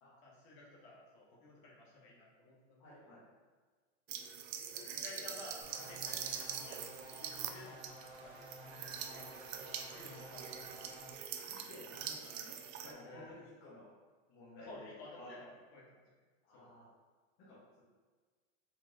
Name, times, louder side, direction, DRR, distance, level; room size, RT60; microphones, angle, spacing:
voice 1, 0.2-3.1 4.7-6.8 7.1-7.8 8.2-9.3 9.9-10.8 13.0-13.4 14.6-16.0 16.5-16.7, left 2 dB, 55° left, -5 dB, 1.4 m, -54 dB
voice 2, 2.8-3.2 11.3-12.5 12.8-13.9 14.3-15.3 16.4-16.9 17.4-17.8, left 2 dB, 40° left, -9 dB, 1.0 m, -54 dB
sound 1, 4.1-12.9, right 8 dB, 90° right, 0.5 m, -44 dB
sound 2, 5.6-11.1, equal, 40° right, 1.4 m, -53 dB
4.5 x 2.9 x 2.5 m, 1.4 s
supercardioid pair, 155°, 38 cm